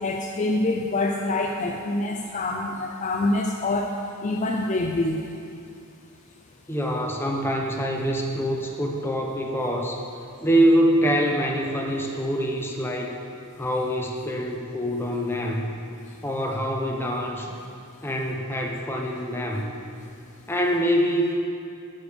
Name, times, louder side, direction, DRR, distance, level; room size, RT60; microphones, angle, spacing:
voice 1, 0.0-3.9 4.2-5.2, left 2 dB, 35° left, 2 dB, 0.4 m, -25 dB
voice 2, 6.7-10.0 10.4-13.2 13.6-15.8 16.2-17.6 18.0-19.7 20.5-21.3, equal, 10° left, 0 dB, 0.9 m, -25 dB
9.8 x 6.8 x 5.1 m, 2.5 s
head